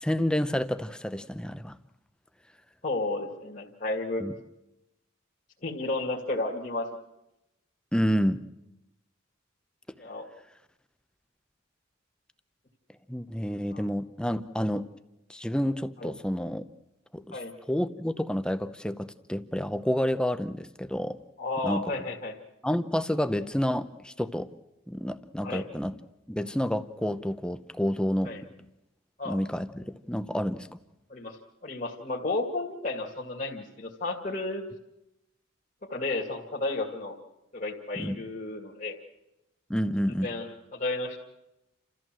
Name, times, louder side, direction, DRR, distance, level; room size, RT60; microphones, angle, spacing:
voice 1, 0.0-1.8 4.2-4.3 7.9-8.4 13.1-14.8 15.3-16.6 17.1-17.4 17.7-21.2 21.6-21.8 22.6-24.5 24.9-26.0 26.3-28.3 29.3-30.8 38.0-38.2 39.7-40.3, equal, 5° left, 11 dB, 0.7 m, -29 dB
voice 2, 2.8-4.2 5.6-6.9 10.0-10.3 13.7-13.8 16.0-16.1 17.3-17.5 21.4-22.4 25.4-25.6 28.2-28.4 29.2-29.4 31.1-31.4 31.6-34.6 35.9-37.2 37.5-39.0 40.2-41.2, left 2 dB, 40° left, -2 dB, 2.3 m, -32 dB
29.5 x 14.0 x 7.6 m, 0.93 s
head